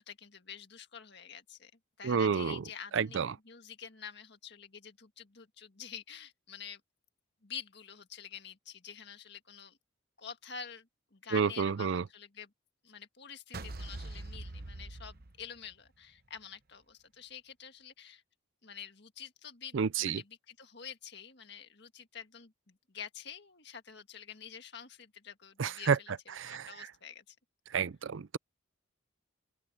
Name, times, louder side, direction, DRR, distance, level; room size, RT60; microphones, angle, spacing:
voice 1, 0.0-1.7 2.0-3.2 3.4-6.8 7.4-9.8 10.2-12.5 12.8-18.2 18.6-27.4, left 7 dB, 55° left, 1.8 m, -48 dB
voice 2, 2.0-2.6 2.9-3.3 11.3-12.0 19.7-20.2 25.6-26.0 26.4-26.7 27.7-28.4, right 6 dB, 65° right, 0.5 m, -29 dB
sound 1, 13.5-15.9, right 2 dB, 45° right, 1.0 m, -43 dB
open air
head